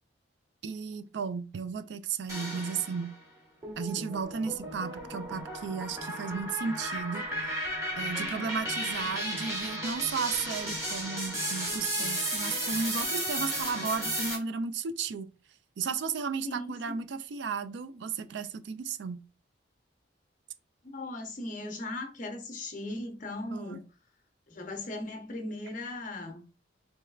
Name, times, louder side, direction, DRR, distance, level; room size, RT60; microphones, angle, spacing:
voice 1, 0.6-3.1 3.8-7.2 8.0-15.3 15.8-19.2 23.4-23.8, right 5 dB, 65° right, 0.4 m, -34 dB
sound 1, 2.3-3.1 3.6-14.3, equal, 15° right, 1.1 m, -34 dB
voice 2, 16.4-17.0 20.8-23.8 24.5-26.4, left 2 dB, 45° left, 0.8 m, -38 dB
4.0 x 3.2 x 2.3 m
head